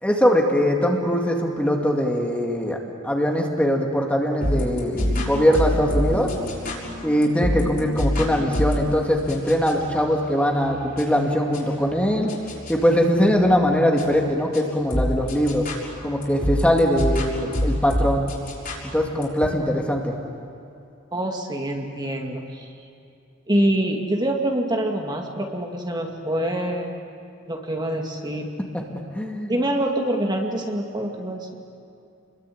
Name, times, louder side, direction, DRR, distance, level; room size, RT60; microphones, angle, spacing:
voice 1, 0.0-2.8 3.0-6.3 7.0-12.3 12.7-15.6 16.0-18.3 18.8-20.1 29.1-29.6, equal, 5° left, 0 dB, 2.3 m, -21 dB
sound 1, 4.4-19.5, equal, 50° left, 6.2 m, -28 dB
voice 2, 21.1-22.7 23.5-26.9 27.5-28.5 29.5-31.6, right 1 dB, 20° right, 1 dB, 2.4 m, -25 dB
29.5 x 22.5 x 8.7 m, 2.6 s
head